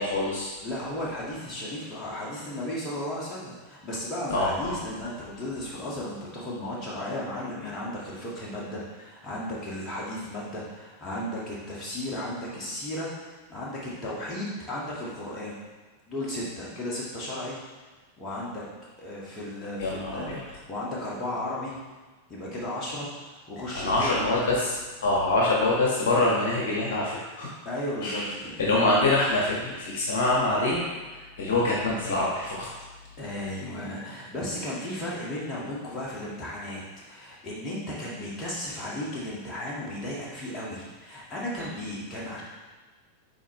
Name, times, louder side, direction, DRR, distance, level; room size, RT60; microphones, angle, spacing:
voice 1, 0.0-0.5 4.3-4.8 19.8-20.4 23.7-24.7 25.0-27.5 28.0-28.2 28.6-30.8 31.1-32.6 41.6-41.7, left 2 dB, 55° left, -5 dB, 1.4 m, -25 dB
voice 2, 0.6-15.6 16.1-17.6 18.2-18.6 19.0-21.8 22.3-23.1 23.5-24.5 27.7-28.5 28.8-28.9 33.2-36.8 37.1-42.4, left 1 dB, 25° left, -6 dB, 1.8 m, -35 dB
6.9 x 4.4 x 3.2 m, 1.3 s
figure-of-eight pair, 90°, 0 cm